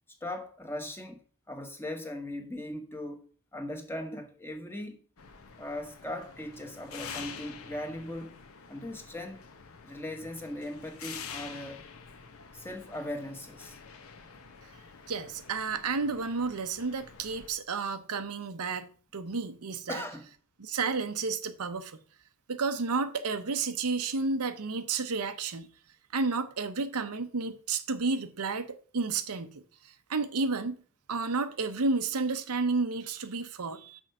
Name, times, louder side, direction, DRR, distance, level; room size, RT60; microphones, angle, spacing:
voice 1, 0.2-1.2 1.5-3.2 3.5-5.0 5.6-8.3 8.7-9.5 9.8-11.8 12.5-13.8 19.9-20.3, left 1 dB, 10° left, 1.1 m, -39 dB
sound 1, 5.2-17.5, left 6 dB, 70° left, 1.0 m, -47 dB
voice 2, 15.1-20.0 20.6-22.0 22.5-25.7 26.1-29.6 30.1-30.8 31.1-34.0, right 4 dB, 90° right, 0.8 m, -31 dB
6.2 x 4.6 x 6.4 m
head